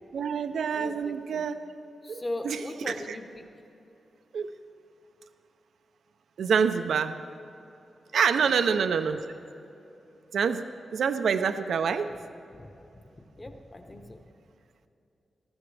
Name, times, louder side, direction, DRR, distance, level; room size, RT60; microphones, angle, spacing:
voice 1, 0.1-1.6 2.1-2.6 2.9-3.0 4.3-4.5 6.4-7.2 8.1-9.2 10.3-10.6 10.9-12.1, right 6 dB, 80° right, 9 dB, 0.6 m, -26 dB
voice 2, 0.7-1.5 2.0-3.5 8.4-9.0 12.5-13.0 13.4-14.2, left 1 dB, 20° left, 5 dB, 1.1 m, -39 dB
20.0 x 14.5 x 3.4 m, 2.8 s
wide cardioid pair, 155°, 0 cm